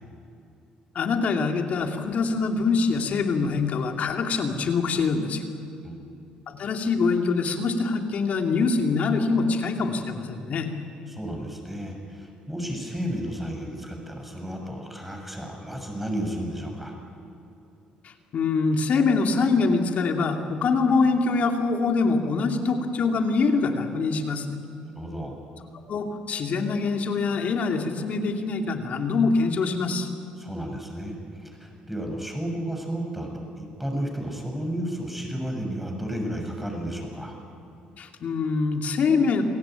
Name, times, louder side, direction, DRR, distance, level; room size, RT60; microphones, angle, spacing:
voice 1, 0.9-5.4 6.5-10.7 18.0-24.5 25.9-30.1 38.0-39.4, left 4 dB, 55° left, 4 dB, 2.8 m, -24 dB
voice 2, 11.1-16.9 24.9-25.4 30.4-37.4, equal, 5° right, 2 dB, 6.6 m, -32 dB
28.0 x 17.0 x 9.2 m, 2.8 s
cardioid pair, 85°, 3 cm